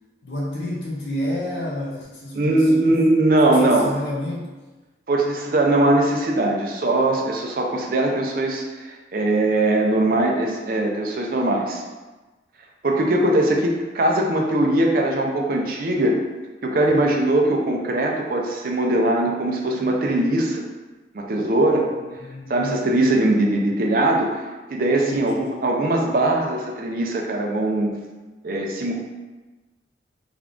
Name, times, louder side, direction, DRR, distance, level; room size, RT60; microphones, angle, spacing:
voice 1, 0.2-3.0 3.4-4.5 16.8-17.2 22.0-23.4 25.0-25.5, left 1 dB, 70° left, -5 dB, 0.7 m, -30 dB
voice 2, 2.3-3.9 5.1-11.8 12.8-16.2 16.6-20.6 21.1-21.9 22.5-24.4 24.7-25.3 25.6-27.9 28.4-28.9, right 1 dB, 50° right, 0 dB, 0.5 m, -20 dB
3.5 x 2.4 x 3.6 m, 1.2 s
head